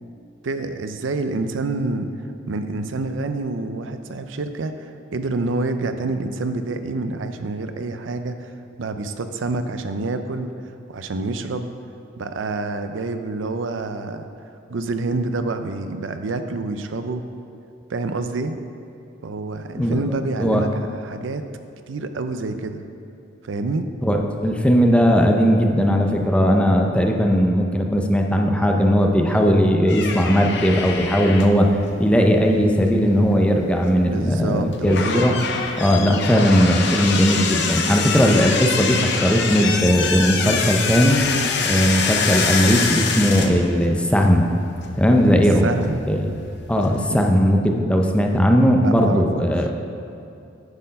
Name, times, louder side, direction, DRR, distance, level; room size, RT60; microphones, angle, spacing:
voice 1, 0.4-2.1 2.5-10.5 10.9-11.7 12.2-14.3 14.7-17.2 17.9-18.5 19.2-21.5 21.9-22.8 23.4-23.9 34.0-35.2 39.6-39.7 45.6-46.1 47.1-47.2 48.8-49.4, right 3 dB, 75° right, 8 dB, 0.5 m, -27 dB
voice 2, 24.0-31.7 32.0-35.3 35.8-41.2 41.6-44.4 45.0-45.7 46.1-46.3 46.7-49.8, equal, 5° left, 2 dB, 0.5 m, -18 dB
sound 1, 29.9-47.2, left 5 dB, 60° left, 0.7 m, -26 dB
9.6 x 4.4 x 5.2 m, 2.6 s
head